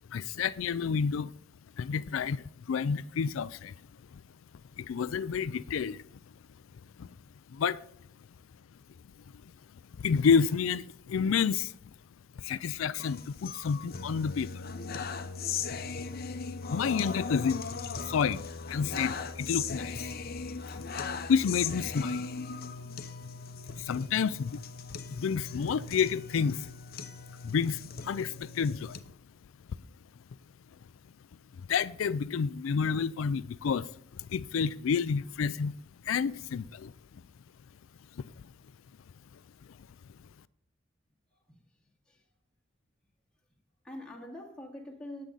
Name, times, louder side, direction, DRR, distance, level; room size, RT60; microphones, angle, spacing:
voice 1, 0.1-1.3 1.8-3.7 4.1-4.2 4.8-6.0 7.0-7.1 7.5-7.8 10.0-11.7 12.4-14.7 16.7-17.7 18.0-20.2 20.7-20.8 21.3-22.3 23.8-24.6 24.9-26.7 27.4-29.0 31.7-33.9 34.2-35.7 36.0-36.9 38.2-38.3, left 6 dB, 80° left, 0.4 m, -29 dB
sound 1, 13.0-29.0, left 5 dB, 50° left, 0.8 m, -38 dB
voice 2, 43.8-45.2, left 1 dB, 5° left, 2.3 m, -44 dB
18.5 x 7.6 x 4.0 m
head